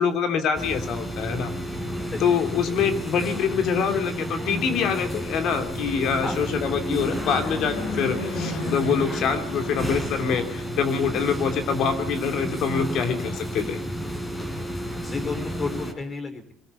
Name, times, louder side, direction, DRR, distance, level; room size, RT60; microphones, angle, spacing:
voice 1, 0.0-1.5 2.2-13.8, left 6 dB, 65° left, 7 dB, 3.0 m, -25 dB
sound 1, 0.5-15.9, equal, 15° left, 4.6 m, -31 dB
Fixed-wing aircraft airplane, 4.6-11.8, left 3 dB, 85° left, 7.3 m, -37 dB
voice 2, 14.5-16.5, left 3 dB, 30° left, 9 dB, 4.4 m, -33 dB
22.0 x 14.0 x 9.6 m, 0.66 s
cardioid pair, 100°, 0 cm